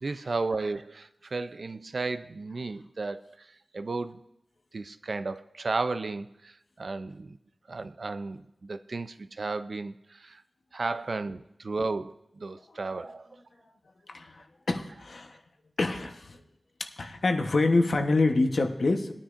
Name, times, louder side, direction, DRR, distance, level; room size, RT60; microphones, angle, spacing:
voice 1, 0.0-3.5 3.7-4.2 4.7-7.4 7.7-10.4 10.7-13.3, right 3 dB, 65° right, 11 dB, 0.5 m, -34 dB
voice 2, 14.1-15.4 15.8-16.4 16.8-19.1, left 3 dB, 70° left, 4 dB, 1.0 m, -26 dB
20.0 x 9.9 x 2.5 m, 0.86 s
wide cardioid pair, 60°, 0 cm